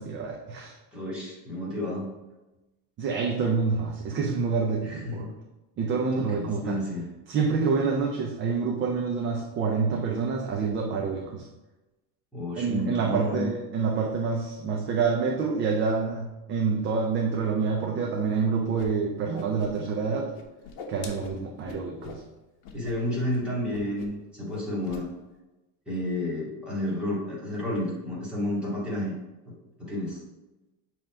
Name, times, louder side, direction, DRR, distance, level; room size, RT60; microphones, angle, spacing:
voice 1, 0.0-0.8 3.0-5.3 5.8-6.8 7.3-11.5 12.6-20.3 20.9-22.2, right 5 dB, 25° right, 0 dB, 0.5 m, -27 dB
voice 2, 0.9-2.1 4.8-5.2 6.1-7.1 12.3-13.5 22.7-25.1 25.9-29.1 29.8-30.2, left 1 dB, ahead, -7 dB, 2.1 m, -31 dB
Whoosh swoosh swish, 18.8-18.9 19.2-20.1 20.3-22.2 22.6-22.9 23.2-23.4 23.7-24.2 24.5-25.0, left 5 dB, 65° left, 1.1 m, -42 dB
7.4 x 3.0 x 4.9 m, 1.0 s
cardioid pair, 170°, 45 cm